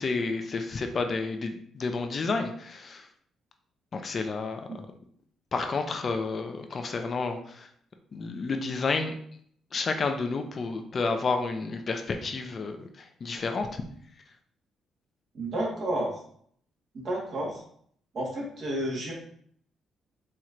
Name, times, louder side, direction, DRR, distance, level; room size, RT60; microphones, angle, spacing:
voice 1, 0.0-3.0 3.9-4.6 5.5-7.4 8.1-9.1 9.7-12.8 13.2-13.7, left 4 dB, 45° left, 5 dB, 0.4 m, -30 dB
voice 2, 15.3-16.2 16.9-17.6 18.1-19.1, right 1 dB, 55° right, -3 dB, 1.4 m, -31 dB
4.4 x 2.9 x 2.5 m, 0.63 s
cardioid pair, 90°, 0 cm